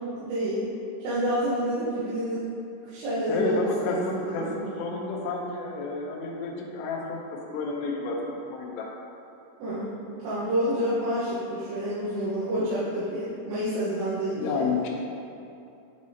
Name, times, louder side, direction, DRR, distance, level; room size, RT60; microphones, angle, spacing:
voice 1, 0.2-0.7 1.0-2.5 2.8-4.5 9.6-9.9 10.2-14.7, equal, 85° right, -12 dB, 3.9 m, -28 dB
voice 2, 3.3-8.9 14.3-14.9, left 3 dB, 85° left, -2 dB, 2.4 m, -30 dB
10.0 x 4.9 x 2.8 m, 2.7 s
omnidirectional pair, 5.7 m